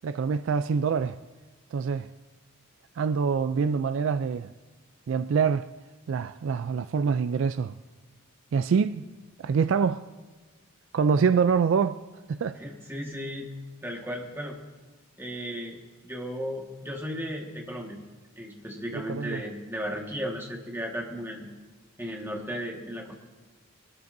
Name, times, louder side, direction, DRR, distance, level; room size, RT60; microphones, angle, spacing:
voice 1, 0.0-1.2 1.7-2.1 3.0-4.5 5.1-5.7 6.1-7.8 8.5-9.0 9.4-10.0 10.9-12.0 12.3-12.6 18.9-19.4, right 6 dB, 60° right, 0.3 m, -25 dB
voice 2, 12.5-13.5 13.8-14.6 15.2-18.0 18.4-21.5 22.0-23.1, equal, 10° right, 1.5 m, -35 dB
24.0 x 13.0 x 2.6 m
head